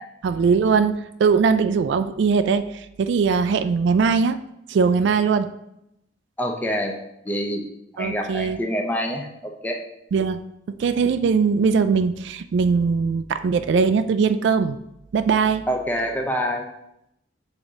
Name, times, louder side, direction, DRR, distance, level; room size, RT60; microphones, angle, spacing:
voice 1, 0.2-4.4 4.7-5.5 8.0-8.6 10.1-10.4 10.8-14.8 15.1-15.7, right 5 dB, 65° right, 11 dB, 0.3 m, -20 dB
voice 2, 6.4-7.0 7.3-7.6 7.9-9.8 15.7-16.7, equal, 10° left, 2 dB, 0.5 m, -26 dB
7.0 x 3.7 x 3.9 m, 0.83 s
head